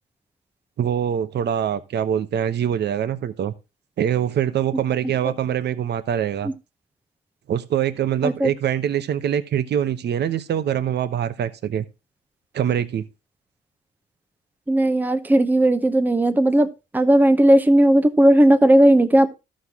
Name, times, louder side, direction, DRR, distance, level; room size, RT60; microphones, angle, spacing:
voice 1, 0.8-3.5 4.0-6.5 7.5-11.8 12.5-13.0, right 9 dB, 60° right, 0.9 m, -24 dB
voice 2, 14.7-16.7 16.9-19.4, right 1 dB, 10° right, 0.8 m, -16 dB
13.0 x 6.4 x 3.6 m
cardioid pair, 90°, 20 cm